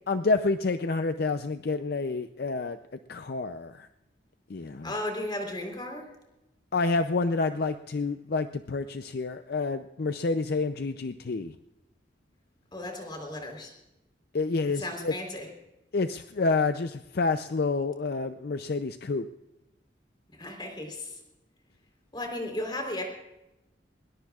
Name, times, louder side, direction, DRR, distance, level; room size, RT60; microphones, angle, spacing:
voice 1, 0.1-2.8 3.1-3.9 4.5-4.9 6.7-11.5 14.3-15.1 15.9-19.3, left 3 dB, 55° left, 9 dB, 0.5 m, -28 dB
voice 2, 4.8-6.1 12.7-13.7 14.8-15.5 20.3-21.2 22.1-23.0, left 1 dB, 25° left, 3 dB, 3.7 m, -35 dB
20.5 x 20.5 x 2.4 m, 0.95 s
head